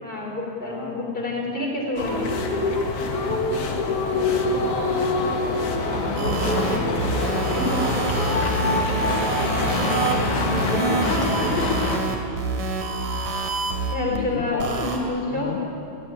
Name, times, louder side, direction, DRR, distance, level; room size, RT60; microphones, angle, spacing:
voice 1, 0.0-2.7 5.8-6.7 7.6-7.9 9.8-11.7 12.6-12.7 13.9-15.5, left 2 dB, 15° left, -1 dB, 4.2 m, -29 dB
voice 2, 0.7-1.6 3.8-5.2 7.8-9.6 14.1-15.7, left 5 dB, 50° left, 1 dB, 2.2 m, -37 dB
sound 1, 2.0-12.0, left 2 dB, 75° left, 3.3 m, -24 dB
sound 2, 6.2-14.2 14.6-15.0, right 4 dB, 85° right, 3.8 m, -27 dB
21.5 x 15.5 x 9.7 m, 2.7 s
omnidirectional pair, 3.5 m